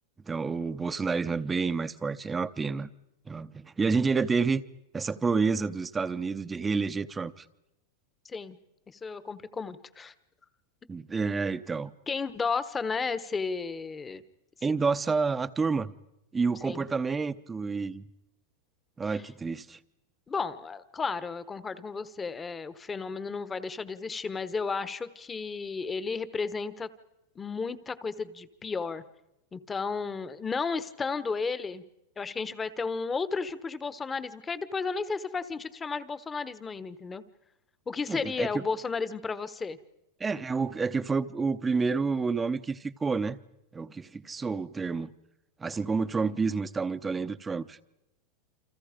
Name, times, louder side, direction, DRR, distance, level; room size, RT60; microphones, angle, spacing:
voice 1, 0.3-2.9 3.3-4.6 4.9-7.4 10.9-11.9 14.6-15.9 16.3-18.0 19.0-19.8 38.1-38.5 40.2-43.4 43.7-45.1 45.6-47.8, right 4 dB, 15° right, 13 dB, 0.8 m, -29 dB
voice 2, 8.2-8.6 8.9-10.1 12.1-14.2 16.6-16.9 19.1-19.2 20.3-26.9 27.4-29.0 29.5-31.8 32.2-37.2 37.9-39.8, left 4 dB, 15° left, 14 dB, 1.1 m, -33 dB
29.0 x 26.0 x 5.1 m, 0.88 s
supercardioid pair, 140°, 0 cm